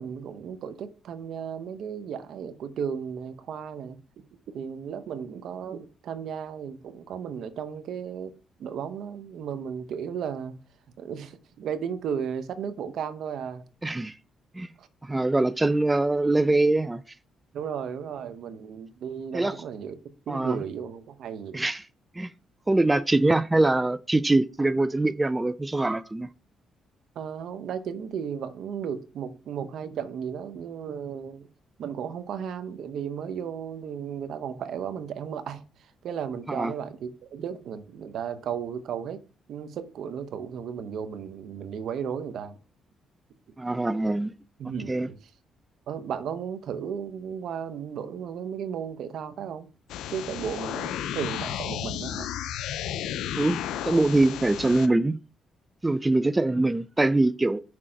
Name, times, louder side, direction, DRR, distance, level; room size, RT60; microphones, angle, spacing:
voice 1, 0.0-4.0 4.5-8.3 8.6-10.6 11.0-13.6 14.8-14.9 17.5-19.9 20.3-21.6 27.1-31.5 31.8-39.2 39.5-42.6 44.6-45.2 45.9-49.7 50.1-52.3, right 7 dB, 70° right, 0.8 m, -34 dB
voice 2, 13.8-14.2 14.5-14.7 15.0-17.0 19.3-19.6 20.3-20.6 21.5-21.8 22.2-22.3 22.7-26.3 36.5-36.7 43.6-44.3 44.9-45.1 53.4-55.2 55.8-57.6, right 2 dB, 15° right, 0.3 m, -23 dB
sound 1, 49.9-54.9, left 10 dB, 85° left, 0.5 m, -33 dB
6.1 x 3.7 x 4.5 m
cardioid pair, 90°, 0 cm